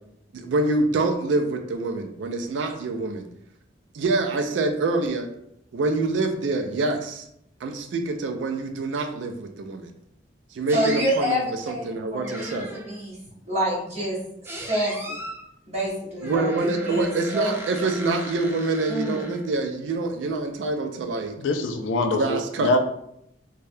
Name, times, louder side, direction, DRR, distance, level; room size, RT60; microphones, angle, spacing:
voice 1, 0.3-3.3 3.9-5.3 5.7-7.3 7.6-9.9 10.5-12.7 16.2-21.4 22.1-22.7, right 3 dB, 80° right, 5 dB, 0.4 m, -26 dB
sound 1, 10.7-11.2 12.2-13.0 14.4-15.4 16.2-19.7, right 1 dB, 15° right, 0.4 m, -37 dB
voice 2, 10.7-13.2 13.5-14.2 14.7-15.2 15.7-17.5 18.9-19.3, equal, 35° right, -6 dB, 1.1 m, -28 dB
voice 3, 21.4-22.8, left 2 dB, 85° left, 6 dB, 0.4 m, -24 dB
3.2 x 2.2 x 2.6 m, 0.75 s
head